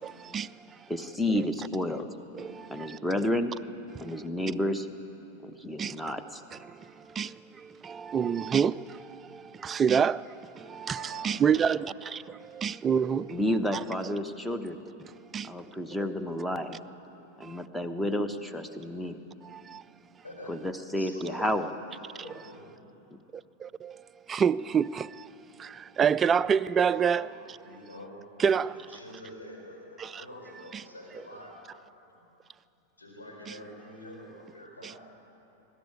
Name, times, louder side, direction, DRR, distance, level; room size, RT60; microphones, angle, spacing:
voice 1, 0.0-0.5 1.3-1.4 2.3-3.3 5.8-5.9 6.5-6.6 7.2-7.3 7.8-10.2 10.6-13.3 13.7-13.8 15.3-15.5 19.5-19.8 23.6-24.0 24.3-25.1 25.6-27.3 28.4-28.7, right 7 dB, 20° right, 0.3 m, -27 dB
voice 2, 0.9-2.1 2.7-3.5 4.0-4.9 5.4-6.4 13.3-14.8 15.4-16.8 17.4-19.2 20.5-21.7 23.1-23.2, left 1 dB, 5° left, 1.0 m, -31 dB
voice 3, 10.9-11.7 20.2-20.7 20.9-21.6 22.1-22.8 26.3-26.4 26.8-27.2 27.5-31.6 33.0-35.0, left 1 dB, 75° left, 4.7 m, -47 dB
21.0 x 12.5 x 9.8 m
figure-of-eight pair, 90°, 0 cm